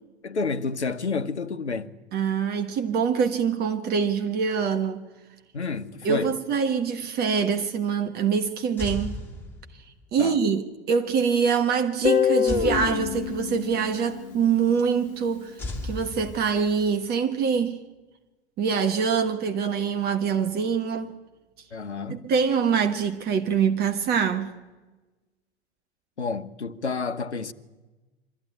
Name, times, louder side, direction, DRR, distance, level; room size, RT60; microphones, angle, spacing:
voice 1, 0.2-1.9 5.5-6.3 10.2-10.4 21.7-22.3 26.2-27.5, left 4 dB, 80° left, 1.1 m, -30 dB
voice 2, 2.1-5.0 6.0-9.2 10.1-15.6 15.8-17.8 18.6-21.2 22.1-24.5, right 6 dB, 30° right, 1.4 m, -24 dB
sound 1, 8.8-10.0 12.5-13.7 15.6-16.9, left 2 dB, 5° left, 3.8 m, -35 dB
Guitar, 12.0-15.0, left 8 dB, 55° left, 1.2 m, -26 dB
24.5 x 14.0 x 9.9 m
figure-of-eight pair, 100°, 33 cm